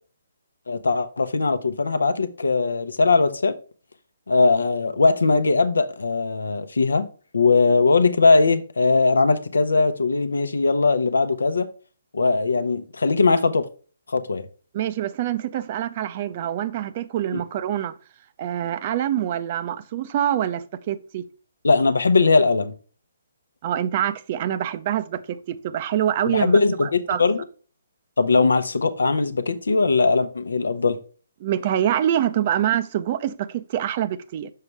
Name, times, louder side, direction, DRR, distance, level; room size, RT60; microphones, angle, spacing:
voice 1, 0.7-3.6 4.3-7.1 7.3-11.7 12.1-13.7 14.1-14.4 17.3-17.4 21.6-22.7 26.3-27.4 28.2-31.0, left 3 dB, 75° left, 0.8 m, -20 dB
voice 2, 14.7-17.9 18.4-21.2 23.6-27.2 31.4-34.5, right 11 dB, 40° right, 0.5 m, -25 dB
6.6 x 4.8 x 3.3 m
figure-of-eight pair, 140°, 0 cm